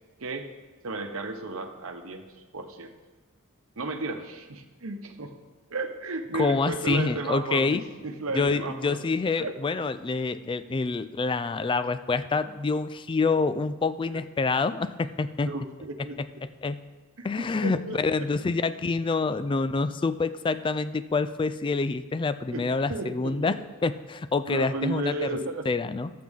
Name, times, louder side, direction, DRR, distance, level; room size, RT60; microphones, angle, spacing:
voice 1, 0.8-2.2 2.5-2.9 3.8-5.3 5.7-9.0 9.4-9.5 15.4-16.2 17.2-17.3 17.6-18.0 22.5-22.6 22.9-23.3 24.5-25.7, right 2 dB, 75° right, 5 dB, 1.0 m, -33 dB
voice 2, 6.3-7.8 8.4-15.5 16.6-16.8 17.2-23.6 23.8-25.3 25.7-26.1, left 4 dB, 25° left, 12 dB, 0.3 m, -27 dB
12.0 x 7.6 x 3.6 m, 1.3 s
head